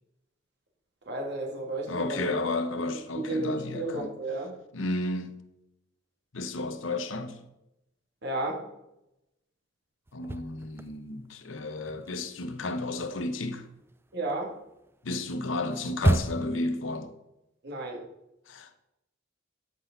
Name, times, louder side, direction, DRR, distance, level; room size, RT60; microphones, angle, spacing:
voice 1, 1.1-2.4 3.2-4.5 8.2-8.6 14.1-14.5 17.6-18.0, right 2 dB, 60° right, 2.5 m, -32 dB
voice 2, 1.9-4.1 4.7-5.4 6.3-7.4 10.1-13.7 15.0-17.1 18.5-18.8, left 2 dB, 75° left, 0.9 m, -32 dB
sound 1, 10.1-11.3 11.6-16.7, right 1 dB, 10° right, 0.4 m, -31 dB
12.0 x 6.4 x 4.0 m
head